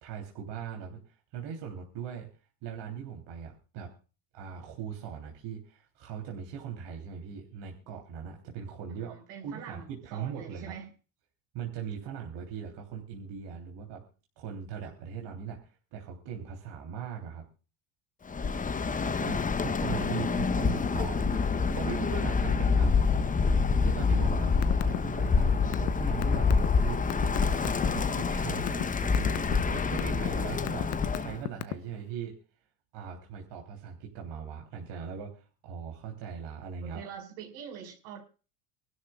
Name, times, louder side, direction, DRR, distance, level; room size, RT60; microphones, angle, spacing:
voice 1, 0.0-2.3 2.6-3.9 4.3-9.2 9.4-10.8 11.5-14.0 14.4-17.4 19.0-23.0 23.7-24.5 24.9-27.1 27.4-30.9 31.2-32.4 32.9-37.1, right 7 dB, 65° right, 3.2 m, -40 dB
voice 2, 8.9-10.9 18.8-19.4 20.0-20.5 36.8-38.2, right 7 dB, 85° right, 5.2 m, -45 dB
Bird, 18.3-31.4, left 5 dB, 15° left, 0.8 m, -27 dB
sound 1, 24.5-25.0 25.3-27.9 28.4-28.8 29.1-29.5 30.0-30.3 30.7-32.0, left 20 dB, 85° left, 0.9 m, -32 dB
24.5 x 13.0 x 2.3 m
supercardioid pair, 95°, 47 cm